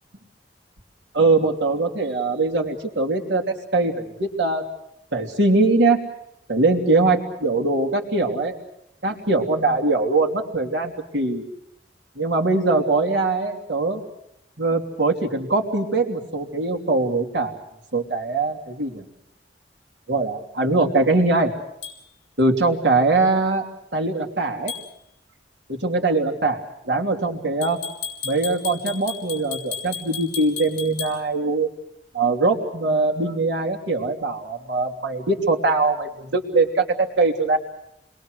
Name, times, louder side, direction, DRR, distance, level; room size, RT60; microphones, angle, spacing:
voice 1, 1.1-4.6 5.1-6.0 6.5-8.6 9.0-11.4 12.2-14.0 14.6-17.6 17.9-19.0 20.1-21.5 22.4-23.6 23.9-24.7 25.7-27.8 28.2-31.7 32.1-37.6, right 3 dB, 85° right, 2 dB, 3.1 m, -22 dB
sound 1, 21.8-22.0 24.7-24.9 27.6-31.2, left 7 dB, 45° left, 6.4 m, -33 dB
29.5 x 22.0 x 6.5 m, 0.77 s
head